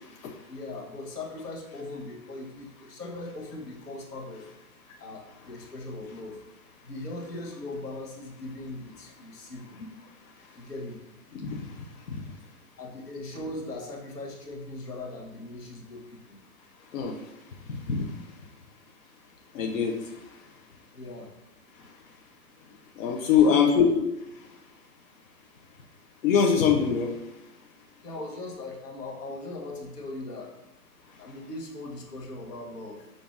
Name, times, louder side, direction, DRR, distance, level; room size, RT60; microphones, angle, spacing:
voice 1, 0.5-4.5 5.0-6.4 6.8-9.8 10.6-11.0 12.8-16.4 20.9-21.3 23.5-23.7 28.0-30.6 31.2-33.1, left 2 dB, 85° left, -1 dB, 1.0 m, -39 dB
voice 2, 11.3-11.7 12.1-12.2 16.9-17.1 17.9-18.1 19.5-20.0 23.0-23.9 26.2-27.1, left 7 dB, 60° left, 1 dB, 0.7 m, -22 dB
5.2 x 2.5 x 2.4 m, 0.91 s
figure-of-eight pair, 120°, 47 cm